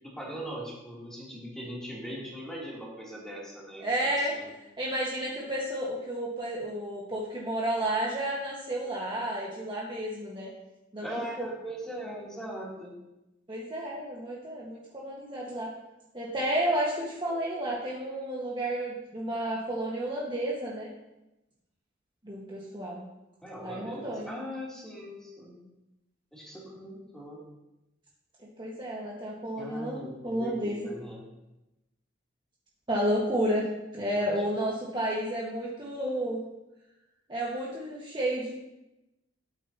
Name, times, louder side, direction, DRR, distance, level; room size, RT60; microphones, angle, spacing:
voice 1, 0.0-4.5 11.0-12.9 23.4-25.6 26.3-27.4 29.6-31.2 34.1-34.3, equal, 5° left, -6 dB, 3.1 m, -40 dB
voice 2, 3.8-4.3 4.8-10.5 10.9-11.1 11.4-11.5 13.5-15.7 16.1-20.9 22.2-23.0 23.6-24.3 28.4-30.8 32.9-33.7 33.9-36.4 37.3-38.5, right 1 dB, 25° right, -5 dB, 1.5 m, -31 dB
13.0 x 8.9 x 2.9 m, 0.95 s
head